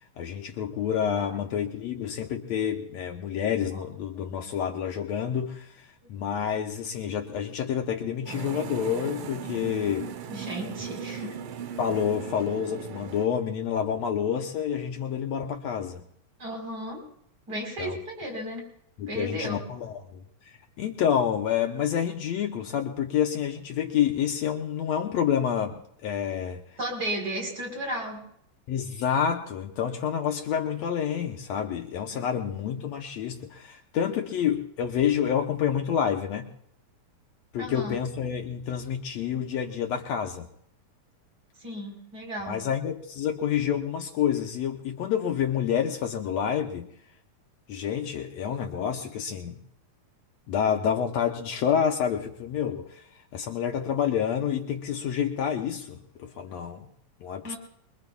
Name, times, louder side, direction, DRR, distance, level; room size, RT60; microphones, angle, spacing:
voice 1, 0.2-5.7 6.1-10.1 11.8-16.0 17.8-18.0 19.0-20.2 20.8-26.6 28.7-36.5 37.5-40.5 42.5-46.9 47.7-49.6 50.5-53.0 53.3-56.9 57.2-57.5, left 8 dB, 70° left, 3 dB, 1.9 m, -28 dB
sound 1, 8.3-13.3, right 8 dB, 90° right, 2.5 m, -38 dB
voice 2, 10.3-11.4 16.4-17.0 17.5-18.7 19.1-19.5 26.8-28.3 32.1-32.3 37.6-38.0 41.6-42.7 57.4-57.6, right 1 dB, 30° right, 1 dB, 4.4 m, -34 dB
24.5 x 22.5 x 2.3 m, 0.71 s
omnidirectional pair, 3.5 m